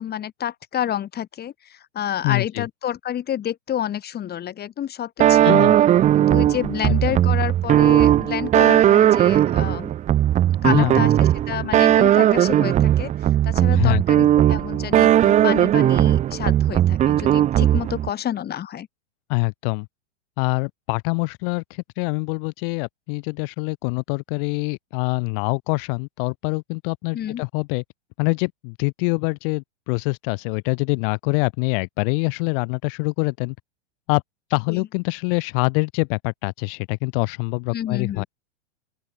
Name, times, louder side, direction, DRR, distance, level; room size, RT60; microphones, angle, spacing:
voice 1, 0.0-5.5 6.1-9.9 10.6-13.1 13.4-18.9 27.1-27.4 34.7-34.8 37.7-38.3, left 10 dB, 25° left, 6.7 m, -29 dB
voice 2, 2.2-2.7 5.4-5.8 6.8-7.2 10.6-11.1 13.7-14.3 19.3-19.9 20.4-27.8 28.2-33.5 34.1-34.2 34.5-38.2, left 34 dB, 50° left, 4.9 m, -25 dB
sound 1, 5.2-18.1, right 12 dB, 20° right, 0.7 m, -17 dB
open air
hypercardioid pair, 115°, 35 cm